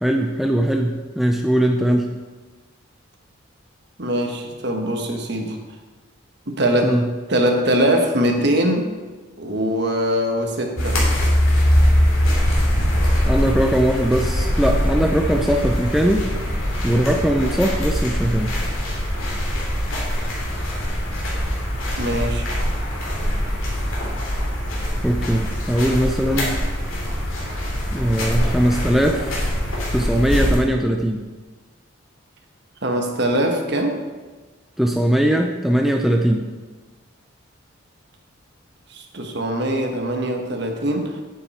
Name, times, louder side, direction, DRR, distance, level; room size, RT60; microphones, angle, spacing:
voice 1, 0.0-2.2 6.8-7.1 13.3-16.3 16.8-18.6 25.0-26.6 27.9-29.3 29.9-31.3 34.8-36.5, right 1 dB, ahead, 2 dB, 0.5 m, -20 dB
voice 2, 4.0-5.6 6.5-7.0 7.3-8.9 9.4-11.0 22.0-22.5 32.8-34.0 38.9-41.2, right 1 dB, 55° right, 3 dB, 1.3 m, -22 dB
sound 1, 10.8-30.6, equal, 85° left, 3.0 m, -22 dB
9.1 x 9.0 x 4.3 m, 1.3 s
head